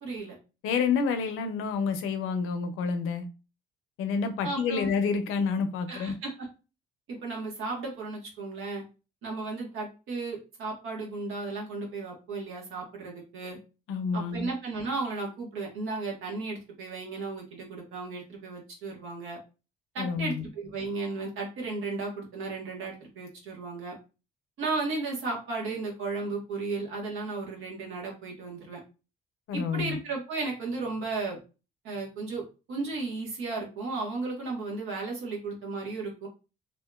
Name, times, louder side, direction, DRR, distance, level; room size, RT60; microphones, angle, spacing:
voice 1, 0.0-0.3 4.4-4.9 5.9-6.5 7.1-8.8 9.2-13.6 14.1-19.4 19.9-24.0 24.6-28.8 29.5-31.4 31.8-36.3, right 3 dB, 80° right, 1.3 m, -34 dB
voice 2, 0.6-3.3 4.0-6.2 13.9-14.5 20.0-20.4 29.5-30.0, left 5 dB, 85° left, 0.5 m, -29 dB
2.7 x 2.7 x 2.3 m
cardioid pair, 90°, 21 cm